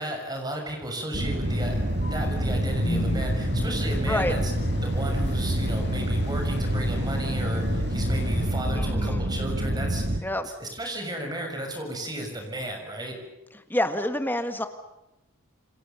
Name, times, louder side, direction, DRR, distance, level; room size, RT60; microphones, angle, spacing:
voice 1, 0.0-1.8 2.1-4.5 4.8-10.2 10.6-13.2, right 1 dB, 20° right, 3 dB, 6.6 m, -34 dB
sound 1, 1.1-10.2, equal, 50° right, 2.0 m, -27 dB
sound 2, 1.4-8.5, equal, 55° left, 4.1 m, -35 dB
voice 2, 8.7-9.2 10.2-10.5 13.7-14.7, left 1 dB, 10° left, 8 dB, 1.7 m, -27 dB
28.5 x 26.5 x 7.0 m, 0.95 s
head